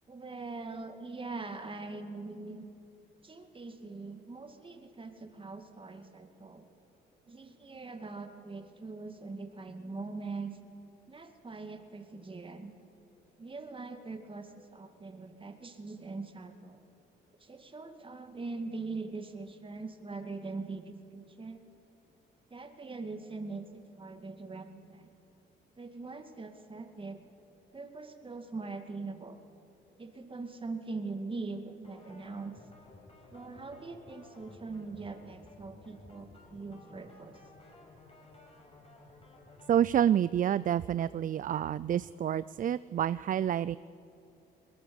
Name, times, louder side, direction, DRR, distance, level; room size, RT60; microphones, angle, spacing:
voice 1, 0.1-2.6 3.2-6.7 7.3-10.5 11.1-12.7 13.4-16.8 17.4-21.6 22.5-25.1 25.8-27.2 27.7-29.4 30.0-32.5 33.3-37.4, right 3 dB, 25° right, 6 dB, 2.2 m, -42 dB
sound 1, 31.8-39.8, left 2 dB, 30° left, 6.3 m, -55 dB
voice 2, 39.7-43.8, right 10 dB, 45° right, 17 dB, 0.4 m, -28 dB
22.0 x 21.5 x 7.1 m, 2.9 s
cardioid pair, 90°, 20 cm